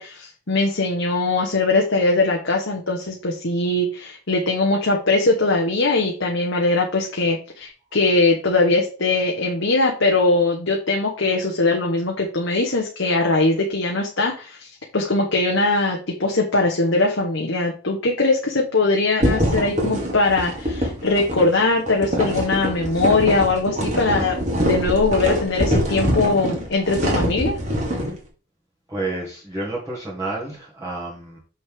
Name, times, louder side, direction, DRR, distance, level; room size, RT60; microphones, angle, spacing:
voice 1, 0.0-27.6, left 2 dB, 60° left, 0 dB, 1.1 m, -21 dB
sound 1, 19.2-28.1, equal, 30° right, 1.9 m, -24 dB
voice 2, 28.9-31.4, right 2 dB, 15° right, -8 dB, 1.7 m, -30 dB
6.5 x 5.5 x 3.6 m, 0.37 s
head